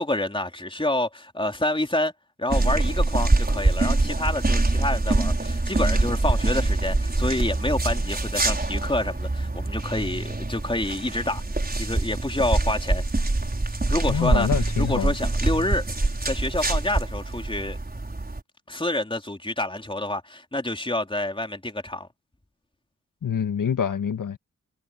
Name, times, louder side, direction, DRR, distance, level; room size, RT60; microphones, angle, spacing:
voice 1, 0.0-2.1 2.4-11.4 11.8-13.0 13.9-15.8 16.2-17.8 18.7-22.1, left 1 dB, 15° left, 3.6 m, -28 dB
sound 1, 2.5-18.4, right 2 dB, 30° right, 6.0 m, -24 dB
voice 2, 14.1-15.1 23.2-24.4, left 8 dB, 75° left, 1.9 m, -25 dB
cardioid pair, 45°, 32 cm